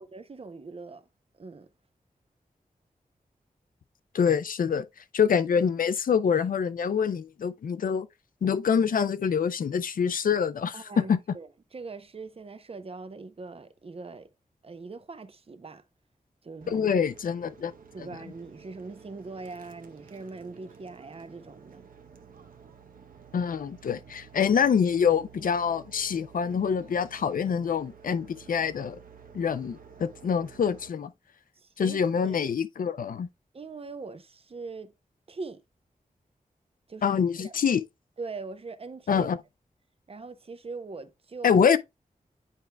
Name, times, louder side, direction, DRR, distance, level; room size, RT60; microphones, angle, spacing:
voice 1, 0.1-1.0 1.3-1.7 10.7-14.3 14.6-15.8 16.4-16.9 17.9-21.8 31.6-32.5 33.5-34.9 35.3-35.6 36.9-37.1 37.4-37.6 38.2-39.3 40.1-41.6, right 4 dB, 40° right, 0.7 m, -41 dB
voice 2, 4.1-4.9 5.1-8.1 8.4-11.2 16.7-17.7 18.0-18.1 23.3-29.0 29.3-31.1 31.8-33.3 37.0-37.8 39.1-39.4 41.4-41.8, left 7 dB, 70° left, 0.4 m, -25 dB
sound 1, 16.6-30.9, right 6 dB, 75° right, 0.8 m, -52 dB
9.8 x 4.5 x 2.2 m
wide cardioid pair, 105°, 15 cm